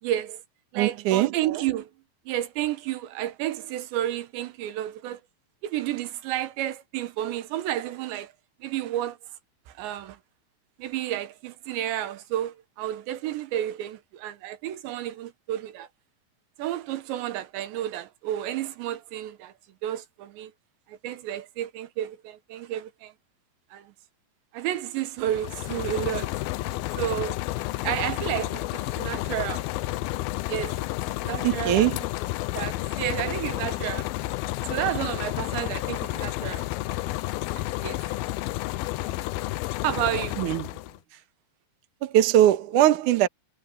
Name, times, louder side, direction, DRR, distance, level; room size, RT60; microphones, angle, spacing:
voice 1, 0.0-0.4 0.7-1.9 2.3-5.2 5.6-8.3 8.6-9.2 9.8-10.2 10.8-15.9 16.6-19.5 19.8-20.5 20.9-23.1 23.7-23.9 24.5-26.3 27.0-27.4 27.8-29.6 30.5-30.7 31.2-31.8 32.6-34.1 34.7-36.7 37.5-38.0 39.8-40.4 41.1-41.2, right 12 dB, 85° right, 3.5 m, -31 dB
voice 2, 0.7-1.4 31.4-32.0 40.4-40.7 42.0-43.3, right 12 dB, 65° right, 2.2 m, -21 dB
sound 1, 25.2-41.0, left 17 dB, 90° left, 2.2 m, -31 dB
omnidirectional pair, 5.0 m